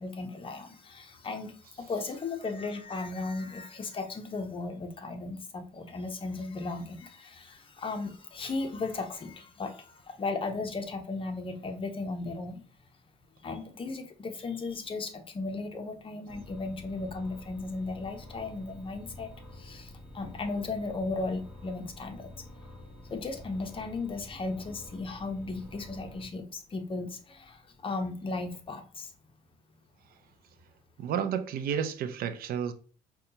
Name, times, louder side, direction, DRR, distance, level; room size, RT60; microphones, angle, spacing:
voice 1, 0.0-12.6 13.4-22.3 23.1-29.1, left 3 dB, 30° left, 0.7 m, -36 dB
sound 1, 16.3-26.2, left 1 dB, 5° right, 1.3 m, -48 dB
voice 2, 31.0-32.7, right 8 dB, 60° right, 0.5 m, -31 dB
5.1 x 2.3 x 2.8 m
cardioid pair, 110°, 17 cm